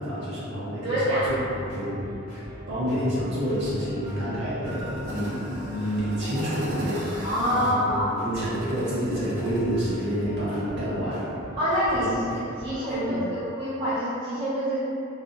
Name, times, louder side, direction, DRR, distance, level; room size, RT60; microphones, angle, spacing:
voice 1, 0.0-2.0 2.3-7.8 8.1-11.3 11.9-12.4 13.0-13.2, equal, 55° right, -10 dB, 0.8 m, -29 dB
voice 2, 0.8-1.3 7.2-8.2 11.6-14.8, equal, 30° right, -11 dB, 0.4 m, -26 dB
sound 1, 1.1-13.1, equal, 5° right, 0.8 m, -43 dB
sound 2, 4.7-10.3, right 1 dB, 85° right, 0.6 m, -40 dB
2.5 x 2.2 x 2.5 m, 2.7 s
head